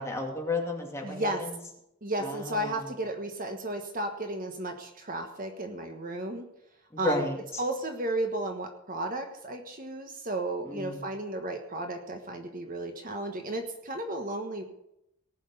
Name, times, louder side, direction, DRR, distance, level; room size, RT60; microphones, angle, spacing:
voice 1, 0.0-1.5 2.2-2.8 6.9-7.6 10.6-11.0, left 2 dB, 10° left, 0 dB, 2.5 m, -33 dB
voice 2, 1.0-1.4 2.0-6.5 7.0-7.2 7.6-14.6, right 1 dB, 40° right, 5 dB, 1.4 m, -33 dB
18.5 x 6.4 x 8.1 m, 0.81 s
head